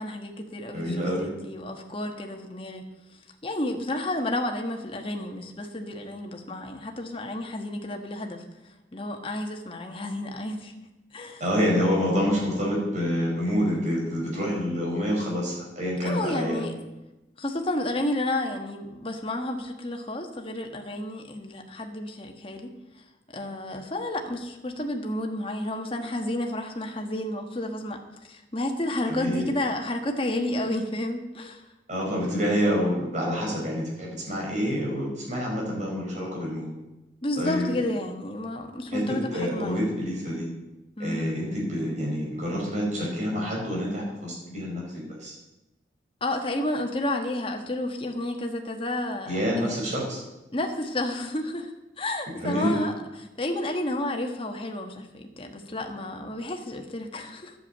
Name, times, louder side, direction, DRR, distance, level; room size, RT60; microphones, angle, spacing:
voice 1, 0.0-2.9 3.4-8.4 8.9-10.7 11.1-11.4 16.0-16.7 17.4-22.7 23.3-28.0 28.3-31.6 37.2-39.9 41.0-41.3 46.2-49.8 50.5-52.9 53.4-57.5, left 1 dB, 30° left, 3 dB, 1.4 m, -31 dB
voice 2, 0.7-1.3 11.4-16.6 29.1-29.5 31.9-36.7 37.4-37.7 38.9-40.5 41.0-45.3 49.2-50.2 52.4-52.8, equal, 40° right, -2 dB, 4.9 m, -27 dB
11.0 x 7.2 x 8.7 m, 0.99 s
head